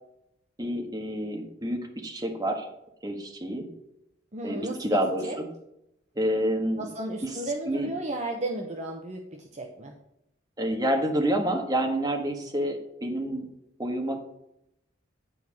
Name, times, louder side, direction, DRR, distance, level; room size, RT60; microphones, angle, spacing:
voice 1, 0.6-2.7 3.0-3.7 4.4-5.5 6.1-6.9 7.2-7.4 7.7-7.9 10.6-13.5 13.8-14.2, right 1 dB, 20° right, 2 dB, 1.5 m, -28 dB
voice 2, 4.3-5.0 5.2-5.4 6.8-9.9, right 1 dB, 35° right, 2 dB, 0.9 m, -34 dB
10.0 x 4.6 x 7.2 m, 0.81 s
head